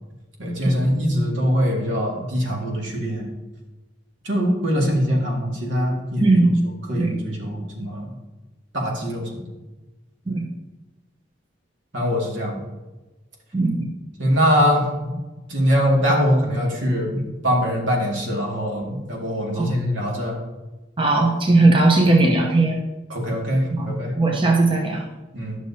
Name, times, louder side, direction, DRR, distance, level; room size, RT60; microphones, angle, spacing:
voice 1, 0.4-3.2 4.2-6.4 6.9-8.1 8.7-9.3 11.9-12.6 14.2-15.1 15.5-20.4 23.1-24.1 25.3-25.6, equal, 85° right, -1 dB, 2.0 m, -22 dB
voice 2, 6.2-6.5 7.0-7.1 10.3-10.4 13.5-13.8 19.6-19.7 21.0-22.8 23.7-23.9 24.2-25.1, right 2 dB, 30° right, 0 dB, 0.8 m, -18 dB
11.5 x 6.3 x 2.8 m, 1.1 s
head